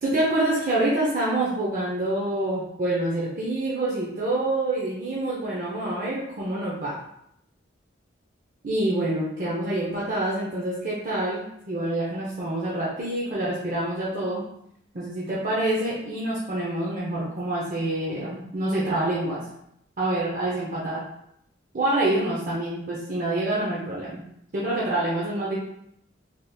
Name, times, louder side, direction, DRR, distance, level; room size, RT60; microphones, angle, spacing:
voice 1, 0.0-7.0 8.6-14.4 14.9-19.4 20.0-21.0 21.7-24.2 24.5-25.6, right 1 dB, 40° right, -6 dB, 0.6 m, -26 dB
3.4 x 2.8 x 2.2 m, 0.75 s
head